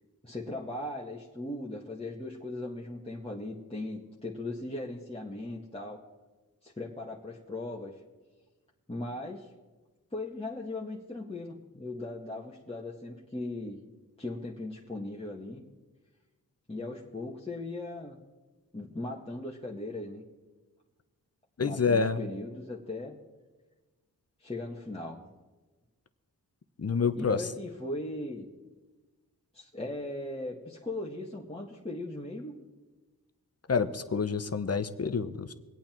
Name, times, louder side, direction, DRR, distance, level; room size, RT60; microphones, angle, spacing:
voice 1, 0.2-6.0 6.6-8.0 8.9-9.5 10.1-13.8 14.2-15.6 16.7-18.2 18.7-20.2 21.6-23.2 24.4-25.3 27.2-28.5 29.5-32.6, left 2 dB, 15° left, -4 dB, 1.9 m, -38 dB
voice 2, 21.6-22.2 26.8-27.5 33.7-35.5, left 5 dB, 40° left, 11 dB, 1.0 m, -28 dB
23.0 x 8.8 x 4.5 m, 1.2 s
cardioid pair, 55°, 37 cm